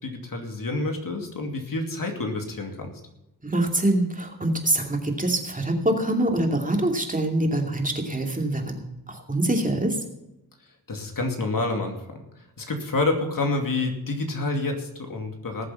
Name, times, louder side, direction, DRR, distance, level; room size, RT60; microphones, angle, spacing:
voice 1, 0.0-2.9 10.9-12.2 12.6-15.7, left 2 dB, 60° left, 3 dB, 2.5 m, -28 dB
voice 2, 3.4-10.0, right 1 dB, 20° right, 2 dB, 2.5 m, -25 dB
19.5 x 7.6 x 5.8 m, 0.91 s
wide cardioid pair, 105°, 37 cm